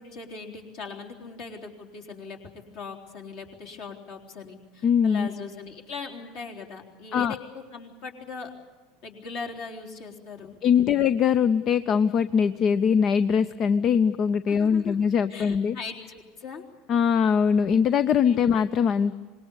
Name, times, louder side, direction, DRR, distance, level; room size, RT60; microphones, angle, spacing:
voice 1, 0.0-7.4 7.7-8.5 9.0-11.0 14.5-15.0 15.3-16.6 18.2-18.4, left 4 dB, 55° left, 0 dB, 3.7 m, -40 dB
voice 2, 4.8-5.3 7.1-7.3 10.6-15.8 16.9-19.1, left 7 dB, 40° left, 14 dB, 0.7 m, -22 dB
25.5 x 21.0 x 8.4 m, 1.4 s
figure-of-eight pair, 75°, 0 cm